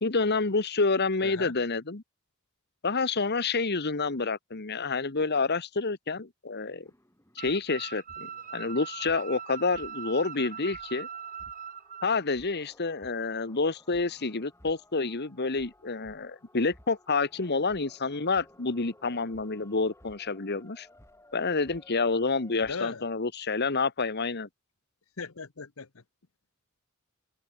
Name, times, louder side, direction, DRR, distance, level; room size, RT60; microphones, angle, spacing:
voice 1, 0.0-2.0 2.8-6.9 7.4-11.1 12.0-20.9 21.3-24.5, left 4 dB, 55° left, 1.4 m, -28 dB
voice 2, 1.2-1.5 22.5-23.0 25.2-26.0, left 4 dB, 80° left, 1.1 m, -38 dB
sound 1, 6.8-22.8, left 1 dB, 15° left, 7.4 m, -58 dB
sound 2, 7.4-12.2, right 7 dB, 40° right, 5.3 m, -41 dB
head